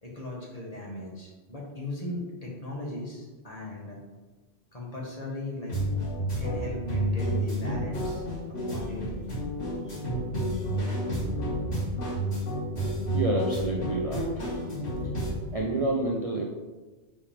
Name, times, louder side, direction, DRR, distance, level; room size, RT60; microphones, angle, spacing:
voice 1, 0.0-4.0 4.7-5.7 6.4-9.2 9.8-10.2, left 1 dB, 30° left, -4 dB, 1.7 m, -38 dB
sound 1, 5.7-15.3, equal, 75° left, 2.6 m, -30 dB
voice 2, 13.1-14.5 15.5-16.4, right 2 dB, 35° right, -2 dB, 0.7 m, -28 dB
8.2 x 4.8 x 3.5 m, 1.2 s
omnidirectional pair, 1.3 m